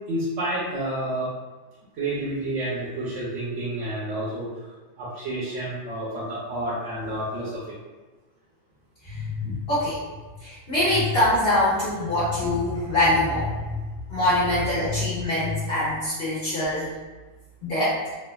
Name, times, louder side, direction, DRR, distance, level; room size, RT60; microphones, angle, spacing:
voice 1, 0.1-1.3 2.0-4.5 5.0-7.5 9.4-9.5, right 1 dB, 90° right, -7 dB, 1.0 m, -29 dB
voice 2, 9.0-10.0 10.4-13.8 14.1-16.9 17.6-18.0, left 1 dB, 60° left, -11 dB, 1.1 m, -24 dB
3.2 x 2.2 x 2.2 m, 1.2 s
omnidirectional pair, 1.2 m